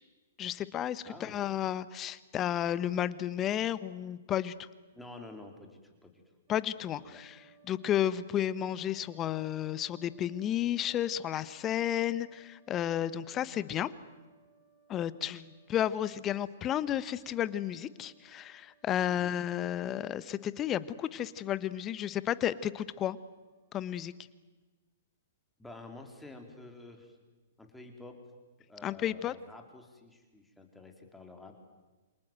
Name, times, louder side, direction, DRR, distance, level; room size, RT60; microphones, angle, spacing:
voice 1, 0.4-4.7 6.5-13.9 14.9-23.2 23.7-24.1 28.8-29.3, left 11 dB, 25° left, 16 dB, 1.1 m, -32 dB
voice 2, 1.0-1.4 4.9-6.2 7.0-7.2 19.1-19.4 25.6-27.2 27.6-28.2 28.7-31.5, left 2 dB, 5° left, 3 dB, 4.0 m, -49 dB
sound 1, 6.5-23.8, right 6 dB, 30° right, 6.2 m, -66 dB
28.5 x 26.5 x 7.9 m, 1.3 s
figure-of-eight pair, 115°, 0 cm